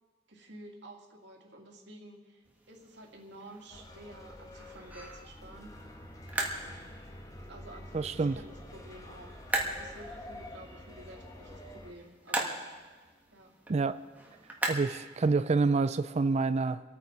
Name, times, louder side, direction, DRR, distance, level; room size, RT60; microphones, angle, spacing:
voice 1, 0.3-5.8 6.4-7.0 7.5-12.6 13.3-13.5, right 1 dB, 70° right, 0 dB, 2.5 m, -51 dB
sound 1, 2.5-15.7, right 1 dB, 10° right, 1.7 m, -40 dB
sound 2, 3.7-11.9, left 1 dB, 20° left, 1.3 m, -48 dB
voice 2, 7.9-8.4 13.7-14.0 14.7-16.8, right 4 dB, 35° right, 13 dB, 0.4 m, -27 dB
27.5 x 9.3 x 4.6 m, 1.4 s
head